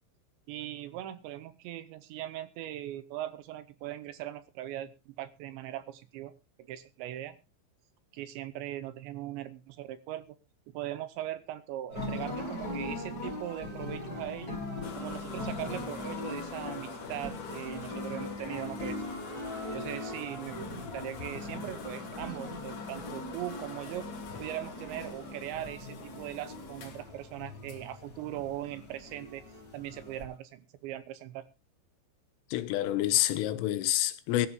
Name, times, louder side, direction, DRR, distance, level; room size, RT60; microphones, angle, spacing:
voice 1, 0.5-6.3 6.7-7.4 8.1-10.4 10.7-14.6 15.0-19.0 19.7-24.1 24.4-29.4 29.7-31.5, right 13 dB, 80° right, 2.8 m, -40 dB
sound 1, 11.9-30.2, left 1 dB, 20° left, 5.5 m, -40 dB
sound 2, 14.8-30.4, left 5 dB, 55° left, 1.8 m, -46 dB
voice 2, 32.5-34.5, left 14 dB, 85° left, 3.6 m, -28 dB
23.0 x 12.5 x 2.3 m
omnidirectional pair, 5.7 m